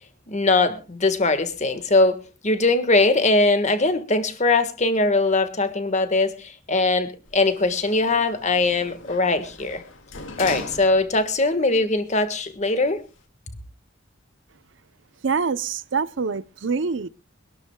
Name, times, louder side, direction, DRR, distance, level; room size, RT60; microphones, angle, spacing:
voice 1, 0.3-9.8 10.4-13.0, left 2 dB, 35° left, 1.5 m, -21 dB
Sliding door, 7.3-11.4 11.8-11.9, left 3 dB, 75° left, 2.2 m, -39 dB
voice 2, 15.2-17.1, right 5 dB, 65° right, 0.6 m, -25 dB
25.0 x 12.0 x 2.2 m
head